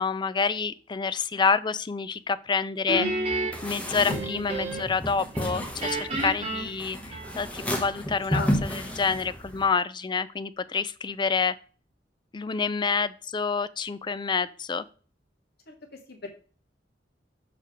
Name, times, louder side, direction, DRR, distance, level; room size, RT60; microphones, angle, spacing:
voice 1, 0.0-3.1 3.6-11.5 12.3-14.8, left 5 dB, 25° left, 15 dB, 0.4 m, -28 dB
Guitar, 2.9-5.0 5.3-7.6, right 2 dB, 35° right, 2.4 m, -31 dB
sound 1, 3.5-9.6, equal, 10° left, 1.2 m, -32 dB
voice 2, 8.3-8.9 15.7-15.8 16.1-16.3, left 3 dB, 60° left, 3 dB, 1.7 m, -36 dB
6.7 x 3.3 x 6.1 m, 0.40 s
head